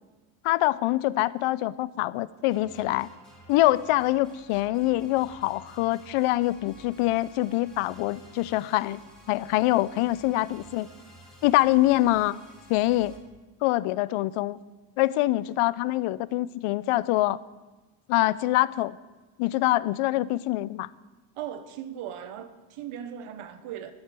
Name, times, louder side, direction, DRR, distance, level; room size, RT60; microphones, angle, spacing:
voice 1, 0.4-3.1 3.5-9.0 9.3-10.9 11.4-12.4 12.7-13.2 13.6-14.6 15.0-17.4 18.1-19.0 19.4-20.9, left 17 dB, 90° left, 19 dB, 0.6 m, -24 dB
sound 1, 2.5-13.2, equal, ahead, 3.5 m, -52 dB
voice 2, 21.4-23.9, right 9 dB, 80° right, 10 dB, 1.3 m, -38 dB
12.5 x 8.2 x 7.5 m, 1.2 s
cardioid pair, 125°, 50 cm